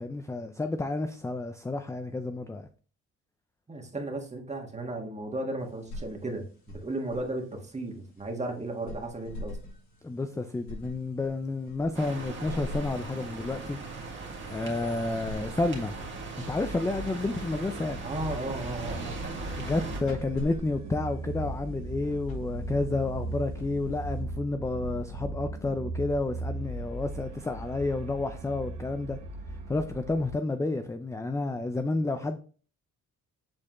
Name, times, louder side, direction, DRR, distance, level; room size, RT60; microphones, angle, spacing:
voice 1, 0.0-2.7 10.0-13.8 14.5-15.9 16.4-18.0 19.6-29.2 29.7-32.4, left 2 dB, 10° left, 0.4 m, -30 dB
voice 2, 3.7-9.6 18.0-19.1, right 2 dB, 20° right, 1.6 m, -35 dB
sound 1, 5.6-24.5, left 1 dB, 70° left, 3.3 m, -46 dB
sound 2, 11.9-20.0, right 3 dB, 40° right, 1.8 m, -39 dB
sound 3, 13.3-30.3, right 2 dB, 85° right, 1.4 m, -39 dB
7.5 x 4.2 x 3.0 m
cardioid pair, 90°, 30 cm